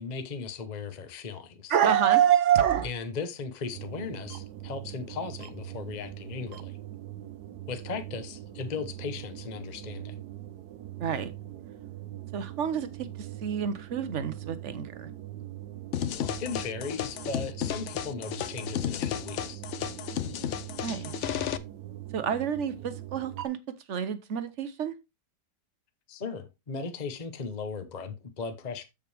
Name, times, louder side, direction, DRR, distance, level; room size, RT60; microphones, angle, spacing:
voice 1, 0.0-1.8 2.8-6.8 7.7-10.1 16.1-19.6 26.1-28.8, left 5 dB, 30° left, 0.9 m, -37 dB
voice 2, 1.7-2.9 11.0-11.3 12.3-12.9 13.2-15.1 20.8-21.1 22.1-23.6 23.9-24.9, right 9 dB, 50° right, 1.0 m, -26 dB
sound 1, 3.7-23.5, right 13 dB, 70° right, 1.2 m, -42 dB
sound 2, 15.9-21.6, left 10 dB, 70° left, 0.7 m, -33 dB
7.3 x 7.1 x 3.3 m
omnidirectional pair, 1.9 m